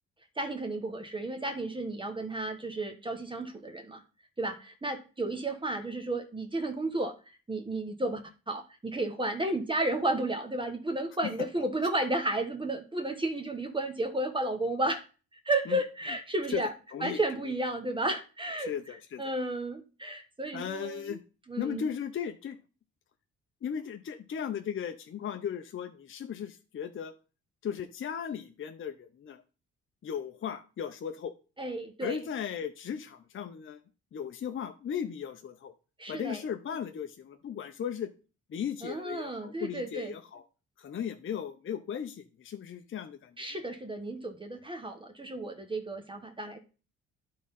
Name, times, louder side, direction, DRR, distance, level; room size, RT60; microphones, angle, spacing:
voice 1, 0.4-4.0 4.4-7.1 7.5-15.0 15.4-16.7 17.0-21.2 21.5-21.9 31.6-32.2 36.0-36.4 38.8-40.1 43.4-46.6, right 1 dB, 15° right, 5 dB, 1.2 m, -33 dB
voice 2, 16.9-17.5 18.6-19.3 20.5-21.2 21.6-22.6 23.6-27.1 27.6-29.4 30.0-31.3 32.0-33.8 34.1-35.7 36.1-38.1 38.5-40.4 40.8-43.5, left 8 dB, 45° left, 6 dB, 0.7 m, -36 dB
10.0 x 3.8 x 5.5 m, 0.35 s
cardioid pair, 90°, 30 cm